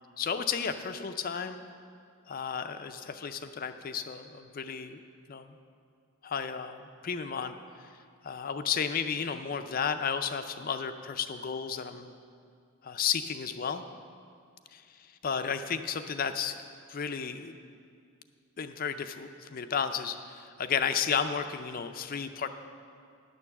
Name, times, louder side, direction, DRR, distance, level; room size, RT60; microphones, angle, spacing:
voice 1, 0.2-1.6 2.3-5.0 5.3-5.6 6.2-7.5 7.8-7.9 8.2-12.1 12.8-13.8 14.7-14.8 15.2-16.6 16.9-17.6 18.6-22.5, left 7 dB, 40° left, 9 dB, 0.4 m, -33 dB
10.5 x 6.8 x 7.1 m, 2.3 s
head